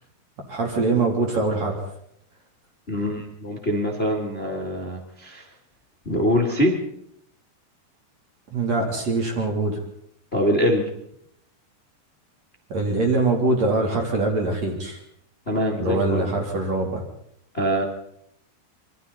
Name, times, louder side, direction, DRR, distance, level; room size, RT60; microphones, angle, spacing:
voice 1, 0.5-1.8 8.5-9.8 12.7-15.0 15.8-17.0, right 3 dB, 40° right, 1 dB, 3.9 m, -23 dB
voice 2, 2.9-5.4 6.0-6.8 10.3-10.8 15.4-16.3 17.5-17.8, equal, 40° left, 0 dB, 0.9 m, -23 dB
27.0 x 23.0 x 4.2 m, 0.72 s
omnidirectional pair, 5.6 m